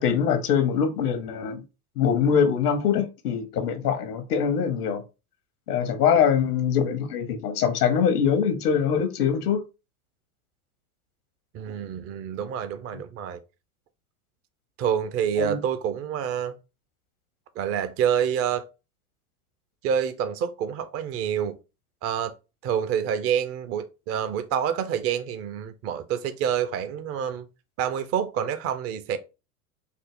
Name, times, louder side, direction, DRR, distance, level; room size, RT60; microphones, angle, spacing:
voice 1, 0.0-1.6 2.0-5.0 5.7-9.6 15.4-15.6, left 7 dB, 75° left, 0.9 m, -23 dB
voice 2, 11.5-13.4 14.8-16.6 17.6-18.7 19.8-21.6 22.0-22.3 22.6-27.5 27.8-29.2, right 8 dB, 30° right, 0.5 m, -27 dB
3.8 x 2.0 x 3.4 m
hypercardioid pair, 85°, 47 cm